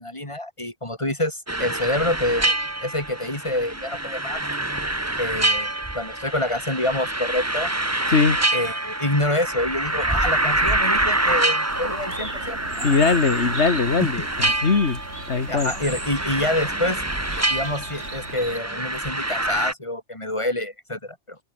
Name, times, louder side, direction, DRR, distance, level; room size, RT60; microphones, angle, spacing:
voice 1, 0.0-4.4 5.2-7.7 8.5-12.9 14.0-14.1 15.5-17.0 17.5-21.4, left 1 dB, 25° left, 4.6 m, -27 dB
sound 1, 1.5-19.7, right 1 dB, 15° right, 1.5 m, -26 dB
Bird, 11.7-18.6, right 1 dB, 75° right, 8.3 m, -38 dB
voice 2, 12.8-15.0 15.3-15.7, left 4 dB, 80° left, 2.2 m, -20 dB
open air
omnidirectional pair, 1.1 m